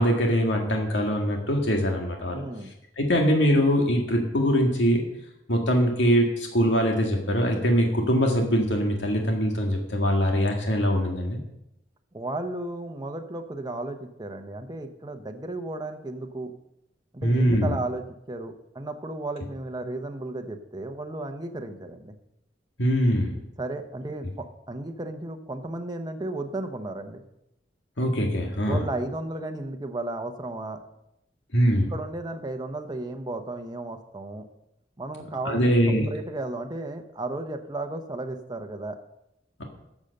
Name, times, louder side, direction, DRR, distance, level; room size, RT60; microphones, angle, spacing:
voice 1, 0.0-2.4 3.0-5.0 5.5-11.4 17.2-17.8 22.8-23.3 28.0-28.8 31.5-31.9 35.5-36.1, equal, 85° left, 1 dB, 1.9 m, -22 dB
voice 2, 2.3-2.7 12.1-16.5 17.1-22.1 23.6-27.2 28.7-30.8 31.9-34.4 35.0-35.7 36.1-39.0, right 2 dB, 25° right, 4 dB, 0.9 m, -34 dB
12.0 x 7.3 x 6.6 m, 0.84 s
head